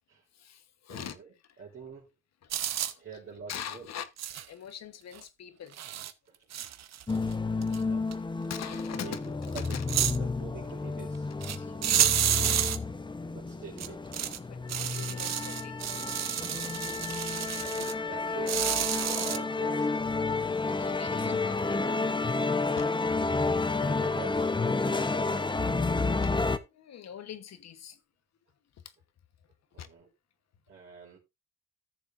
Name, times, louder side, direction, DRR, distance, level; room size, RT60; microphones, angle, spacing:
voice 1, 0.3-1.2 2.4-3.0 3.5-4.1 4.5-5.8 7.7-7.8 8.5-9.8 11.5-12.1 14.4-15.8 20.8-21.8 22.7-22.9 26.2-26.3 26.7-28.0 29.8-29.9, left 9 dB, 60° left, 1.2 m, -43 dB
voice 2, 0.9-1.3 1.6-2.1 3.0-3.9 6.3-6.4 7.5-8.1 8.9-9.8 10.2-11.3 13.3-14.0 17.3-18.7 19.2-20.0 23.8-25.7 29.7-30.1 30.7-31.2, right 6 dB, 45° right, 3.2 m, -46 dB
sound 1, 2.5-2.9 4.2-4.5 5.2-5.3 5.7-6.1 6.5-7.3 7.6-7.8 8.1-8.2 9.6-10.2 11.4-11.6 11.8-12.8 13.8-14.4 14.7-17.9 18.5-19.4, right 11 dB, 60° right, 0.9 m, -30 dB
sound 2, 7.1-26.6, left 3 dB, 15° left, 0.8 m, -31 dB
14.0 x 6.9 x 2.5 m
cardioid pair, 90°, 30 cm